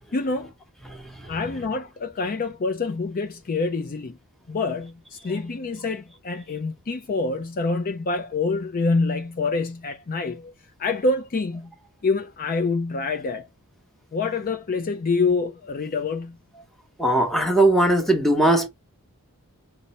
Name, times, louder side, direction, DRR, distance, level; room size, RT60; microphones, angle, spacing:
voice 1, 0.1-0.5 1.3-4.2 4.5-10.4 10.8-11.7 12.0-13.5 14.1-16.4, left 3 dB, 40° left, 0.4 m, -26 dB
voice 2, 0.9-1.3 17.0-18.7, right 1 dB, ahead, 0.9 m, -20 dB
5.3 x 2.1 x 4.1 m
head